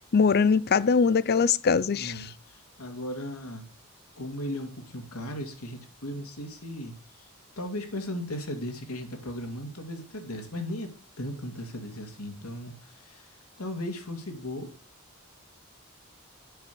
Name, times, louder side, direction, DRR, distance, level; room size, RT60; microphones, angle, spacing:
voice 1, 0.0-2.3, left 5 dB, 45° left, 0.5 m, -22 dB
voice 2, 1.9-3.6 4.2-7.3 7.6-10.9 11.2-13.3 13.6-14.7, left 1 dB, 85° left, 2.2 m, -37 dB
7.9 x 6.2 x 6.8 m
head